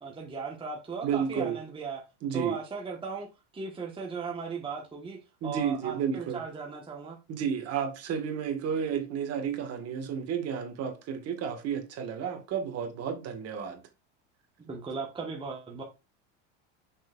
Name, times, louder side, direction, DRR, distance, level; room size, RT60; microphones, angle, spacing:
voice 1, 0.0-2.0 2.3-3.3 3.5-7.2 14.7-15.8, right 5 dB, 15° right, 1.3 m, -37 dB
voice 2, 1.0-1.6 2.2-2.6 5.4-6.4 7.3-13.8, right 7 dB, 40° right, 1.8 m, -32 dB
6.5 x 6.3 x 2.5 m
supercardioid pair, 120°, 37 cm